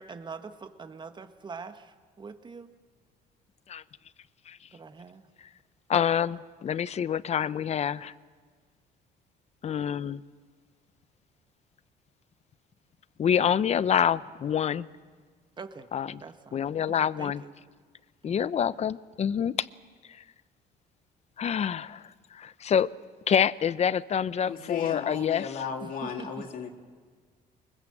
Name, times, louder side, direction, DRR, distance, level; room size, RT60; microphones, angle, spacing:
voice 1, 0.0-2.7 4.7-5.2 15.6-15.9 16.2-17.6 18.2-18.5 25.8-26.4, right 5 dB, 25° right, 9 dB, 1.4 m, -44 dB
voice 2, 5.9-8.1 9.6-10.2 13.2-14.9 15.9-16.1 16.5-17.4 18.2-19.7 21.4-22.0 22.3-22.9 23.3-25.4, left 8 dB, 40° left, 17 dB, 0.7 m, -26 dB
voice 3, 24.4-26.7, left 6 dB, 55° left, 2 dB, 3.0 m, -35 dB
24.0 x 22.0 x 7.8 m, 1.5 s
cardioid pair, 110°, 17 cm